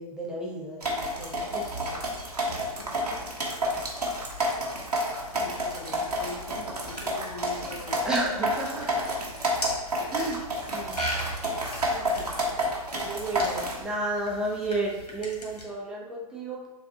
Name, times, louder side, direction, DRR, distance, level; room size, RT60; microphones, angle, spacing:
voice 1, 0.0-1.8 8.0-9.1 10.1-11.1 11.9-16.7, right 2 dB, 5° right, -4 dB, 0.7 m, -33 dB
sound 1, 0.8-13.8, equal, 85° right, 1.2 m, -30 dB
sound 2, 1.6-15.6, right 1 dB, 80° left, 1.5 m, -41 dB
voice 2, 2.8-3.3 3.7-3.8 5.3-8.0 10.0-10.2, left 2 dB, 45° left, 1 dB, 0.9 m, -42 dB
7.2 x 2.5 x 2.8 m, 1.1 s
figure-of-eight pair, 120°, 20 cm